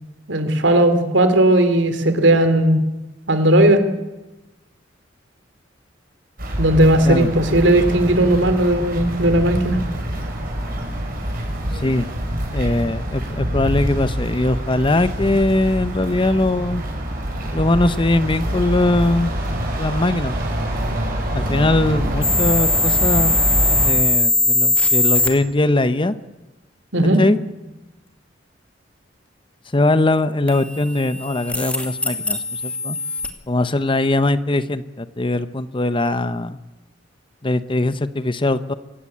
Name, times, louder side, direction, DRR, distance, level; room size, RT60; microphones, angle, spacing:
voice 1, 0.3-2.8 3.3-3.8 6.6-9.8 26.9-27.2, right 1 dB, 70° right, 9 dB, 3.1 m, -16 dB
sound 1, 6.4-23.9, right 1 dB, 50° right, 6.6 m, -25 dB
voice 2, 12.5-16.8 17.5-19.3 19.8-20.4 21.3-23.4 23.8-26.1 27.2-27.4 29.7-33.0 33.5-36.6 37.4-38.7, left 2 dB, 25° left, 13 dB, 0.8 m, -20 dB
sound 2, 22.2-25.3 30.5-33.3, left 2 dB, 5° left, 2.6 m, -20 dB
24.5 x 18.5 x 8.6 m, 1.1 s
head